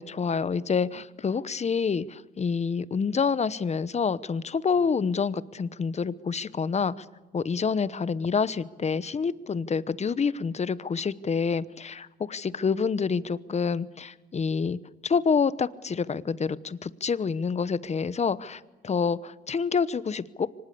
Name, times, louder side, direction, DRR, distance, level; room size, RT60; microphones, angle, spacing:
voice 1, 0.0-7.0 7.3-14.8 15.0-20.5, left 5 dB, 35° left, 17 dB, 1.0 m, -27 dB
24.5 x 19.5 x 8.5 m, 1.2 s
cardioid pair, 90°, 20 cm